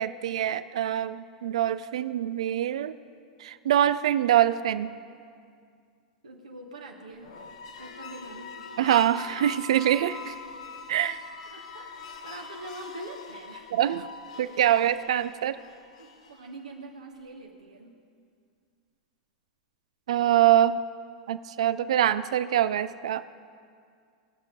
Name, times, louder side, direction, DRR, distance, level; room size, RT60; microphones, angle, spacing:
voice 1, 0.0-3.0 3.4-4.9 8.8-10.3 10.9-11.2 13.7-14.1 14.4-15.6 20.1-20.8 21.3-23.2, right 11 dB, 70° right, 14 dB, 0.4 m, -24 dB
voice 2, 6.2-7.3 7.8-8.6 11.5-11.9 12.2-13.7 16.0-18.0, right 2 dB, 85° right, 0 dB, 1.1 m, -43 dB
sound 1, 7.1-16.5, left 5 dB, 70° left, 1.0 m, -43 dB
19.0 x 6.7 x 5.1 m, 2.2 s
hypercardioid pair, 95°, 4 cm